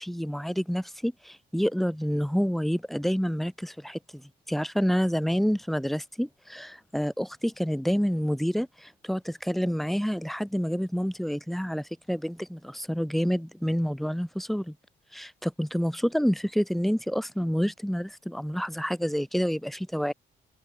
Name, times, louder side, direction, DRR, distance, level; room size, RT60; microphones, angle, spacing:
voice 1, 0.0-14.7 15.1-20.1, equal, ahead, 4.3 m, -28 dB
open air
cardioid pair, 90°, 20 cm